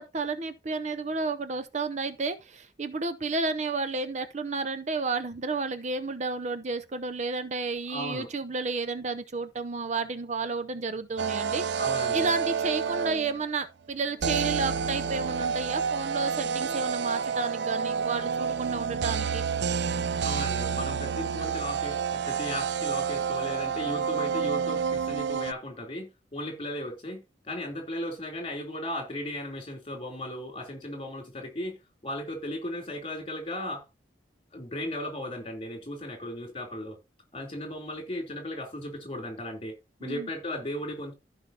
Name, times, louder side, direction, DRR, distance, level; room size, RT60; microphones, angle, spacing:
voice 1, 0.0-11.6 12.1-19.4 40.0-40.3, right 3 dB, 40° right, 0.6 m, -31 dB
voice 2, 7.9-8.3 11.8-12.3 20.2-31.8 32.0-33.9 34.5-37.0 37.3-39.7 40.0-41.1, left 1 dB, 30° left, 3.4 m, -36 dB
sound 1, 11.2-13.5 14.2-25.5, right 6 dB, 80° right, 0.5 m, -29 dB
15.0 x 5.1 x 2.9 m
head